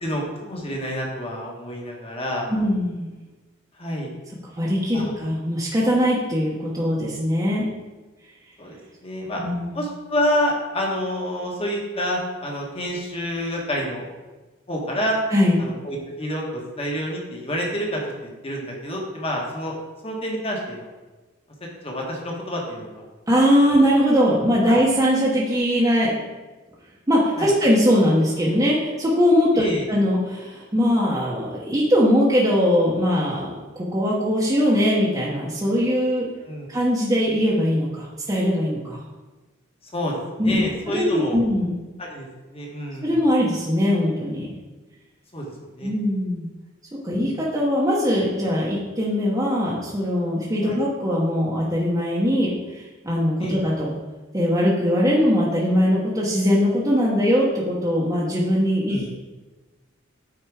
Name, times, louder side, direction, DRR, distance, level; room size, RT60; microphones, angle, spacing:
voice 1, 0.0-2.5 3.8-4.1 4.9-5.1 8.6-9.4 9.7-14.0 14.7-15.2 15.6-18.0 18.4-19.7 20.0-20.9 21.8-23.0 27.4-27.5 29.5-29.8 36.4-36.7 39.9-41.4 42.0-43.2 45.3-45.9 50.6-50.8 53.4-53.6 58.9-59.1, equal, 30° left, -1 dB, 1.5 m, -28 dB
voice 2, 2.5-3.1 4.6-7.6 9.4-9.8 15.3-15.6 23.3-26.1 27.1-36.3 36.7-39.0 40.4-41.7 43.0-44.5 45.8-46.5 47.0-54.0 54.3-59.3, equal, 20° right, -6 dB, 1.1 m, -21 dB
8.9 x 4.2 x 4.9 m, 1.2 s
head